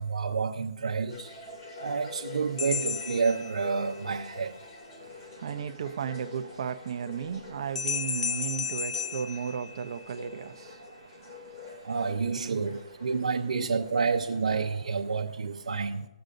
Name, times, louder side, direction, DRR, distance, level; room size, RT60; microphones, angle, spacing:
voice 1, 0.0-1.4 1.8-4.6 11.8-16.1, right 5 dB, 85° right, 0.9 m, -29 dB
sound 1, 1.1-15.0, left 3 dB, 35° left, 2.6 m, -46 dB
sound 2, 2.6-4.1 7.8-10.3, left 6 dB, 65° left, 0.5 m, -34 dB
voice 2, 5.0-12.0 12.7-12.8 15.7-16.0, right 7 dB, 45° right, 0.7 m, -36 dB
19.5 x 8.0 x 2.6 m
hypercardioid pair, 170°, 4 cm